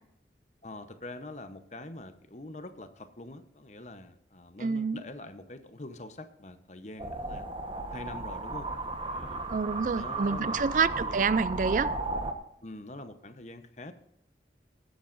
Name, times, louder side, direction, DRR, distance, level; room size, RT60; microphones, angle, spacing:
voice 1, 0.6-7.5 7.9-8.7 9.1-9.4 9.9-11.3 12.6-13.9, left 2 dB, 40° left, 0.9 m, -44 dB
voice 2, 4.6-5.0 9.5-11.9, right 5 dB, 45° right, 0.4 m, -27 dB
sound 1, 7.0-12.3, right 2 dB, 30° right, 1.2 m, -34 dB
19.5 x 10.5 x 2.6 m
head